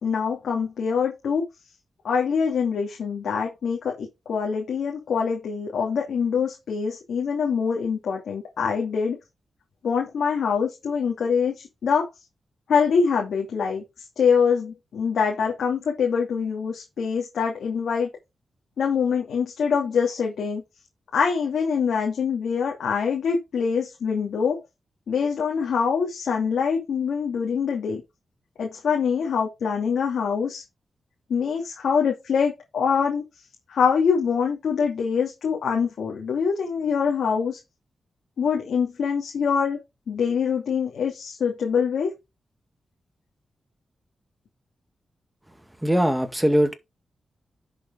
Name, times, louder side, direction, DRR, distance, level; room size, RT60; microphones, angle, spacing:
voice 1, 0.0-1.4 2.0-9.2 9.8-12.1 12.7-13.8 14.2-18.1 18.8-20.6 21.1-24.6 25.1-28.0 28.6-30.6 31.3-33.2 33.7-37.6 38.4-39.8 40.1-42.1, left 6 dB, 85° left, 2.7 m, -24 dB
voice 2, 45.8-46.7, equal, 10° right, 2.1 m, -20 dB
10.5 x 6.9 x 3.9 m
cardioid pair, 75°, 0 cm